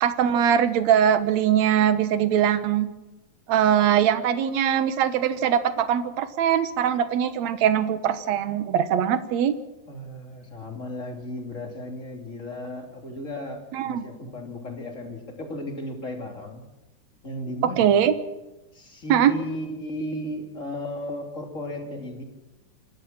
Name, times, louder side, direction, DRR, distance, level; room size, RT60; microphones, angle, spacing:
voice 1, 0.0-2.9 3.5-9.5 13.7-14.1 17.6-18.1 19.1-19.3, right 9 dB, 65° right, 11 dB, 2.1 m, -21 dB
voice 2, 9.9-16.6 17.2-18.0 18.7-22.2, left 1 dB, 25° left, 2 dB, 2.8 m, -35 dB
26.5 x 13.0 x 7.4 m, 1.0 s
omnidirectional pair, 3.9 m